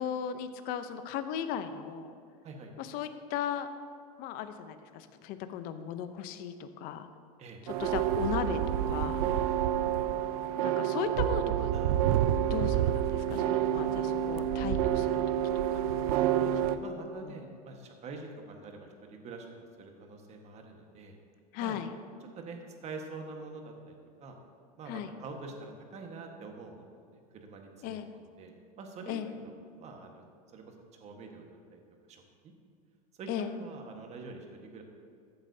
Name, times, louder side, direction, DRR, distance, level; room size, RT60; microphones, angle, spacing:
voice 1, 0.0-2.1 2.8-3.7 4.2-7.1 7.6-9.2 10.6-11.7 12.5-15.2 15.7-15.8 17.2-17.4 21.5-21.9 24.9-25.1 27.8-28.1 29.1-29.3 33.3-33.5, left 9 dB, 50° left, 10 dB, 0.7 m, -36 dB
sound 1, 7.7-16.8, right 10 dB, 70° right, 0.5 m, -28 dB
voice 2, 16.1-19.5 19.8-21.2 21.6-21.8 22.3-23.9 24.2-24.4 24.8-29.5 29.8-30.2 30.5-30.7 31.0-31.8 32.1-32.5 33.2-34.8, right 3 dB, 35° right, 3 dB, 1.5 m, -46 dB
14.0 x 8.8 x 2.8 m, 2.2 s
supercardioid pair, 115°, 20 cm